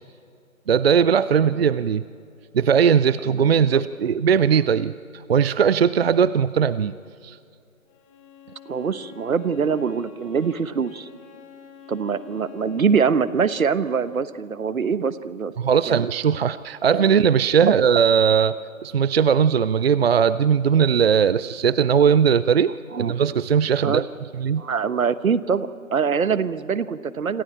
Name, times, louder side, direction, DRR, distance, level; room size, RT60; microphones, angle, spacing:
voice 1, 0.7-2.0 2.5-7.0 7.2-7.4 15.6-18.6 18.8-24.0 24.3-24.6, right 7 dB, 45° right, 16 dB, 0.5 m, -19 dB
voice 2, 1.4-1.9 3.2-3.8 8.7-11.1 11.9-15.5 15.9-16.1 16.9-17.1 17.6-17.7 22.9-23.1 23.8-24.0 24.6-27.4, right 6 dB, 75° right, 14 dB, 1.2 m, -24 dB
Bowed string instrument, 7.9-13.2, left 8 dB, 20° left, 2.4 m, -47 dB
28.5 x 27.0 x 4.4 m, 2.4 s
figure-of-eight pair, 150°, 42 cm